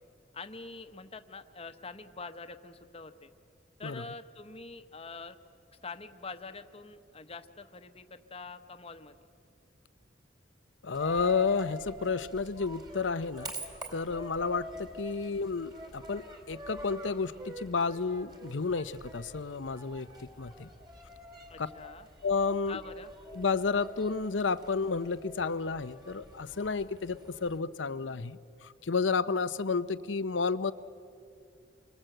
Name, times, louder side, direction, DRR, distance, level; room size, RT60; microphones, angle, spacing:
voice 1, 0.3-3.3 3.8-5.4 5.8-9.2 21.5-22.1 22.7-23.1, left 4 dB, 30° left, 9 dB, 1.1 m, -45 dB
voice 2, 10.8-13.5 13.9-20.1 20.4-20.7 21.6-21.7 22.2-22.8 23.3-30.7, left 4 dB, 75° left, 14 dB, 0.8 m, -31 dB
Coin (dropping), 10.9-27.6, right 1 dB, 25° right, 2.5 m, -47 dB
27.5 x 24.5 x 7.9 m, 2.4 s
head